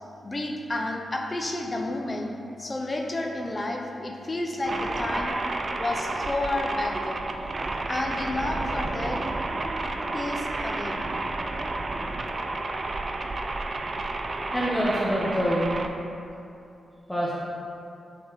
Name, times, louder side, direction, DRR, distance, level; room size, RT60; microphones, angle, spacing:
voice 1, 0.2-2.3 2.6-5.3 5.8-7.3 7.9-9.2 10.1-11.1, left 2 dB, 30° left, 1 dB, 0.8 m, -30 dB
sound 1, 4.7-15.9, right 2 dB, 45° right, 0.4 m, -31 dB
voice 2, 14.5-15.8 17.1-17.5, equal, 5° left, -7 dB, 1.0 m, -26 dB
7.0 x 3.7 x 4.0 m, 2.7 s
cardioid pair, 55°, 0 cm